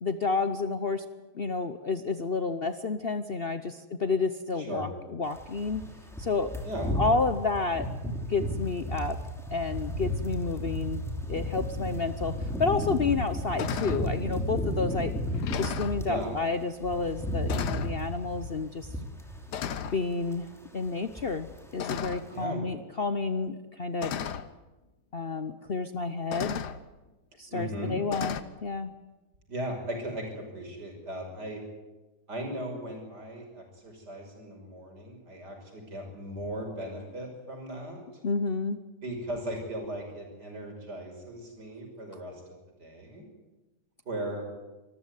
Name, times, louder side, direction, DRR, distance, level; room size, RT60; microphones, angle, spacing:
voice 1, 0.0-1.1 1.3-5.8 6.2-6.5 7.0-9.2 9.5-11.0 11.3-15.1 15.6-18.9 19.9-20.5 20.7-21.5 21.7-24.1 25.1-26.7 27.4-28.9 38.2-38.8, left 4 dB, 45° left, 10 dB, 0.8 m, -30 dB
voice 2, 4.6-4.9 6.6-6.9 16.1-16.3 22.3-22.6 27.5-28.0 29.5-31.6 32.3-38.0 39.0-43.2 44.1-44.4, right 1 dB, 70° right, 2 dB, 6.4 m, -37 dB
sound 1, 5.3-16.2 16.6-20.0 20.3-20.5 20.8-21.7 21.9-22.1, equal, ahead, 2.8 m, -33 dB
sound 2, 12.5-12.6 13.1-13.3 13.6-14.1 14.9-15.0 15.3-16.0 17.0-17.2 17.5-18.0 18.9-19.1 19.5-20.0 21.8-22.4 23.5-23.6 24.0-24.5 25.7-25.8 26.3-26.8 28.1-28.4, left 8 dB, 75° left, 1.5 m, -35 dB
25.0 x 14.0 x 9.7 m, 1.1 s
omnidirectional pair, 1.8 m